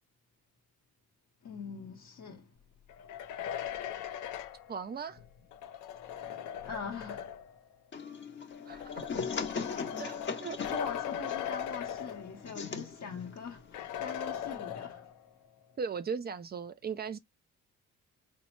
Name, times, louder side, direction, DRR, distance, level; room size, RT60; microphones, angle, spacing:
voice 1, 1.4-2.5 6.0-7.3 9.7-9.9 10.7-15.1, left 5 dB, 65° left, 0.9 m, -43 dB
sound 1, 2.9-7.6 8.5-12.7 13.0-13.1 13.7-15.3, left 10 dB, 80° left, 0.5 m, -39 dB
voice 2, 4.7-5.2 8.7-8.9 10.0-10.7 11.2-11.3 15.8-17.2, right 6 dB, 35° right, 0.4 m, -38 dB
sound 2, 7.9-14.6, left 5 dB, 40° left, 0.7 m, -40 dB
4.0 x 2.0 x 3.0 m
cardioid pair, 90°, 30 cm